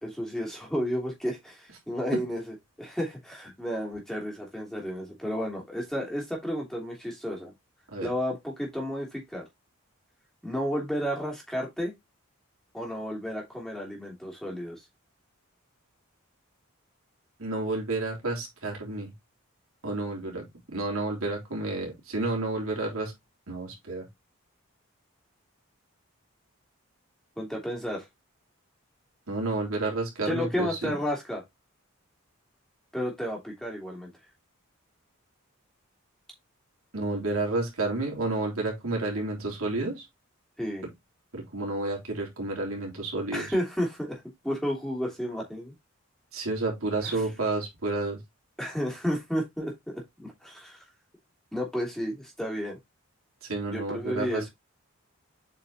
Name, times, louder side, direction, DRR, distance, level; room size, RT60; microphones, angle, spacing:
voice 1, 0.0-7.5 8.0-9.4 10.4-11.9 12.7-14.8 27.4-28.0 30.2-31.4 32.9-34.1 40.6-40.9 43.3-45.7 47.0-47.2 48.6-50.8 51.5-52.8 53.7-54.5, equal, ahead, 2.9 m, -32 dB
voice 2, 17.4-19.1 19.8-20.4 20.7-23.1 23.5-24.0 29.3-31.0 36.9-40.0 41.3-43.5 46.3-48.2 53.4-54.5, right 2 dB, 75° right, 3.4 m, -30 dB
8.1 x 5.3 x 2.9 m
head